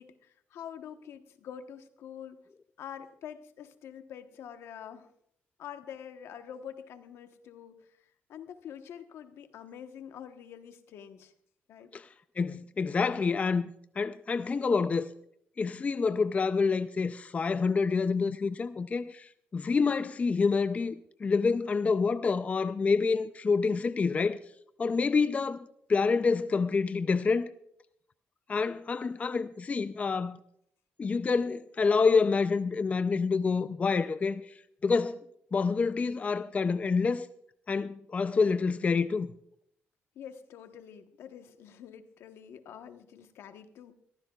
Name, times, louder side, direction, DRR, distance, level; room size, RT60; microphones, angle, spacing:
voice 1, 0.0-2.4 2.8-5.1 5.6-11.3 11.7-11.9 40.1-43.9, left 8 dB, 85° left, 1.1 m, -46 dB
voice 2, 12.4-13.6 14.0-15.1 15.6-21.0 21.2-24.4 24.8-25.6 25.9-27.5 28.5-30.4 31.0-34.5 34.8-35.2 35.5-37.3 37.7-39.3, left 4 dB, 35° left, 0.5 m, -27 dB
23.0 x 14.5 x 2.4 m
cardioid pair, 100°, 4 cm